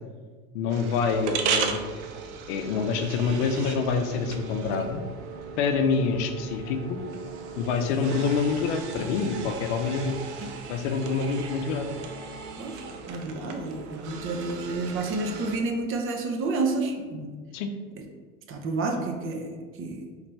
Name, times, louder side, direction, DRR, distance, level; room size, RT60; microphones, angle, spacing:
voice 1, 0.5-1.8 2.5-5.0 5.6-7.0 7.6-10.2 10.7-11.9 17.5-17.7, left 5 dB, 85° left, 6 dB, 0.5 m, -26 dB
sound 1, 0.7-15.6, right 6 dB, 80° right, 0.5 m, -36 dB
voice 2, 12.6-17.3 18.5-20.0, right 3 dB, 40° right, 3 dB, 0.6 m, -30 dB
3.2 x 3.0 x 3.3 m, 1.5 s
supercardioid pair, 110°, 34 cm